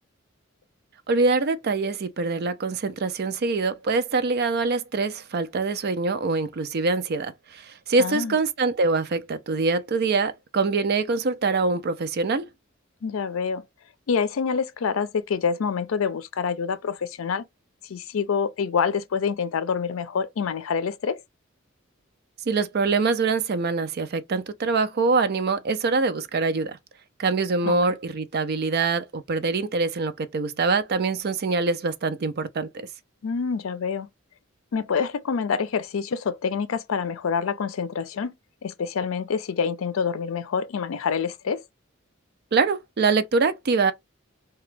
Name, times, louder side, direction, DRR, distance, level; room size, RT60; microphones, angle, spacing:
voice 1, 1.1-7.6 7.9-12.5 22.5-26.8 27.2-32.9 42.5-43.9, right 4 dB, 50° right, 0.5 m, -24 dB
voice 2, 8.0-8.4 13.0-13.6 14.1-17.4 17.9-21.2 27.6-27.8 33.2-34.1 34.7-38.3 38.6-41.6, left 6 dB, 80° left, 0.4 m, -26 dB
2.9 x 2.3 x 3.2 m
head